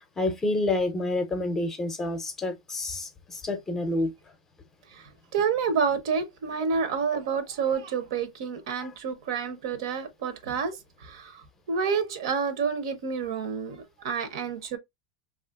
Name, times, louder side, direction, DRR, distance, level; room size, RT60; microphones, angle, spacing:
voice 1, 0.0-4.1 8.7-8.9, left 2 dB, 15° left, 0.6 m, -29 dB
voice 2, 4.9-11.4 11.7-14.8, right 6 dB, 70° right, 0.7 m, -29 dB
3.1 x 2.4 x 2.3 m
supercardioid pair, 150°, 3 cm